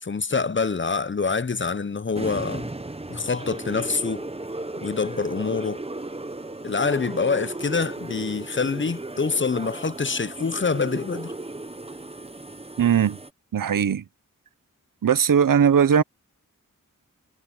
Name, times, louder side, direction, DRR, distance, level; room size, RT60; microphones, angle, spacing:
voice 1, 0.0-2.7 3.1-4.3 4.8-5.8 6.6-11.3, left 4 dB, 35° left, 0.7 m, -26 dB
sound 1, 2.1-13.3, right 2 dB, 20° right, 1.0 m, -35 dB
voice 2, 12.8-13.2 13.5-14.0 15.0-16.0, right 8 dB, 80° right, 0.8 m, -19 dB
cardioid pair, 50°, 32 cm